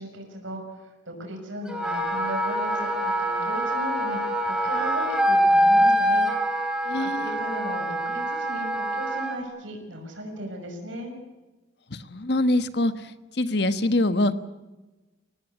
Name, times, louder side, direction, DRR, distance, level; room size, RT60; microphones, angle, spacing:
voice 1, 0.0-11.1, right 1 dB, 80° right, 2 dB, 6.3 m, -37 dB
Wind instrument woodwind instrument, 1.7-9.4, equal, 5° right, 3.3 m, -24 dB
voice 2, 6.9-7.3 12.1-12.9 13.4-14.3, left 1 dB, 55° left, 12 dB, 1.3 m, -23 dB
24.0 x 18.5 x 8.4 m, 1.1 s
head